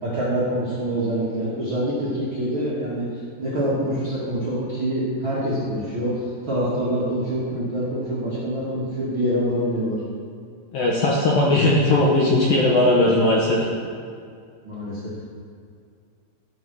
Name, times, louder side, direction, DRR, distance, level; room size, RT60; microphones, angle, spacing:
voice 1, 0.0-3.1 3.4-10.0 14.6-15.1, right 1 dB, 45° right, -10 dB, 1.7 m, -25 dB
voice 2, 10.7-13.7, left 2 dB, 70° left, -4 dB, 2.3 m, -18 dB
14.0 x 5.5 x 6.2 m, 2.2 s
omnidirectional pair, 5.3 m